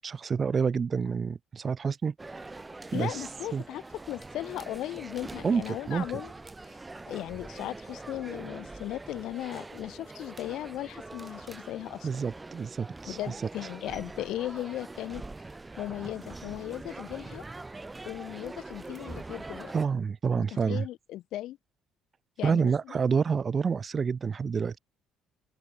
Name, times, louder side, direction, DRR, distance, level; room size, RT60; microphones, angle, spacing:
voice 1, 0.0-2.5 2.9-3.2 3.5-3.6 5.4-6.1 12.0-13.2 19.7-20.9 22.4-24.8, right 6 dB, 35° right, 0.4 m, -28 dB
sound 1, 2.2-19.8, right 2 dB, 15° right, 1.2 m, -44 dB
voice 2, 2.9-6.3 6.7-6.8 7.1-12.1 13.0-15.2 15.8-17.4 18.0-19.7 20.4-21.6 22.4-23.0, left 14 dB, 70° left, 1.7 m, -37 dB
open air
cardioid pair, 115°, 0 cm